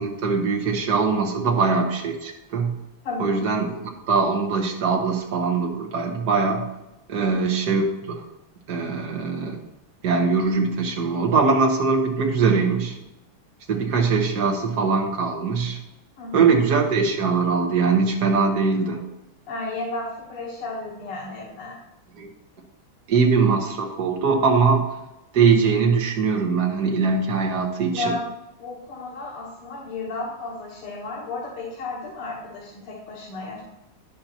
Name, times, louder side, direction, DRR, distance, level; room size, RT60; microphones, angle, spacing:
voice 1, 0.0-2.7 3.2-3.7 4.1-6.6 7.1-8.2 8.7-9.6 10.0-13.0 13.7-15.8 16.3-19.0 22.1-22.3 23.1-24.9 25.3-28.1, right 5 dB, 55° right, 1 dB, 1.5 m, -21 dB
voice 2, 3.0-3.4 7.2-7.3 16.2-16.5 19.5-21.8 27.9-28.3 28.6-33.6, left 3 dB, 90° left, -4 dB, 2.1 m, -33 dB
10.5 x 6.9 x 2.9 m, 0.94 s
omnidirectional pair, 2.4 m